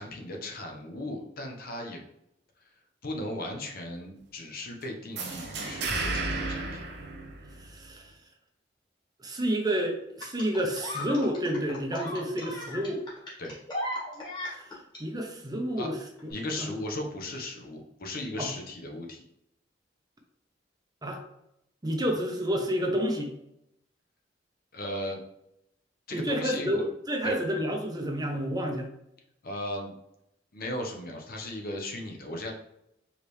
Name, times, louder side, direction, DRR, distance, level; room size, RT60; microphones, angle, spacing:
voice 1, 0.0-2.0 2.6-2.7 3.0-6.8 13.4-13.6 15.8-15.9 16.3-19.2 24.7-25.2 26.1-26.8 27.2-27.4 29.4-29.9 30.5-32.5, left 1 dB, 55° left, 2 dB, 0.9 m, -36 dB
sound 1, 5.2-7.9, right 3 dB, 65° right, 0.9 m, -33 dB
voice 2, 7.6-8.1 9.2-13.0 15.0-16.0 16.6-16.7 18.4-18.5 21.0-21.2 21.8-23.3 26.1-28.9, equal, 20° right, 2 dB, 0.7 m, -29 dB
sound 2, 10.2-15.0 16.2-16.3, left 1 dB, 25° left, 1.8 m, -37 dB
4.8 x 3.4 x 3.2 m, 0.80 s
head